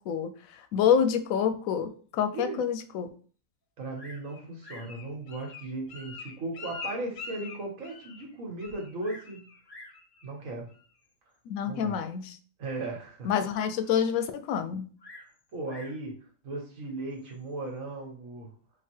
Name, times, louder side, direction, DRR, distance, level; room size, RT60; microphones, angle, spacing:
voice 1, 0.7-3.1 11.5-12.4 13.2-14.9, left 8 dB, 90° left, 9 dB, 1.0 m, -27 dB
voice 2, 2.3-2.6 3.8-9.4 10.2-10.7 11.6-12.0 12.6-13.3 15.5-18.5, right 2 dB, 75° right, 0 dB, 1.4 m, -37 dB
Bird vocalization bird call bird song, 3.9-4.3 4.6-5.0 5.8-5.9 6.6-6.7 7.2-7.3 7.5-7.6 8.6-9.3 9.7-10.0 11.0-11.4 15.0-16.0 17.1-17.5, left 1 dB, 30° left, 0.5 m, -50 dB
Bird, 4.3-8.3 8.6-9.0 9.3-9.6 9.9-10.3 10.7-10.8, left 4 dB, 60° left, 0.8 m, -44 dB
3.9 x 2.5 x 4.4 m, 0.42 s
omnidirectional pair, 1.4 m